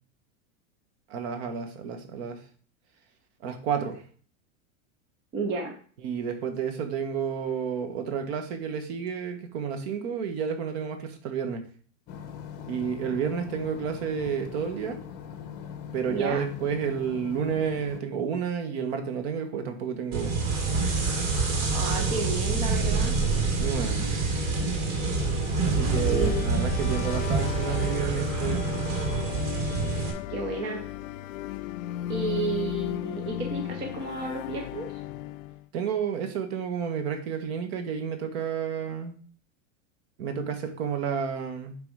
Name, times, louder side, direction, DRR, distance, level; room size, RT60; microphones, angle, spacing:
voice 1, 1.1-2.4 3.4-4.0 6.0-11.6 12.7-15.0 15.9-20.4 23.6-24.0 25.6-28.7 35.7-39.2 40.2-41.8, right 7 dB, 50° right, 7 dB, 1.5 m, -31 dB
voice 2, 5.3-5.7 16.1-16.4 21.7-23.1 26.1-26.5 30.3-30.8 32.1-34.9, right 3 dB, 15° right, 3 dB, 0.4 m, -32 dB
sound 1, 12.1-18.0, left 7 dB, 25° left, 0.7 m, -41 dB
sound 2, 20.1-30.1, right 4 dB, 70° right, 3.3 m, -27 dB
sound 3, 22.7-35.6, left 12 dB, 80° left, 0.6 m, -36 dB
9.8 x 3.7 x 4.8 m, 0.44 s
supercardioid pair, 175°, 40 cm